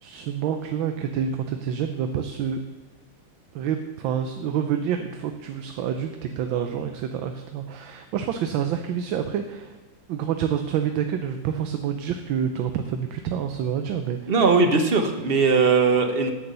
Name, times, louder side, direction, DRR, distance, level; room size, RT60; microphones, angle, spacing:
voice 1, 0.0-2.6 3.5-9.8 10.1-14.4, right 8 dB, 85° right, 7 dB, 1.5 m, -28 dB
voice 2, 14.3-16.3, right 4 dB, 40° right, 6 dB, 0.9 m, -19 dB
9.2 x 8.8 x 6.7 m, 1.3 s
omnidirectional pair, 2.1 m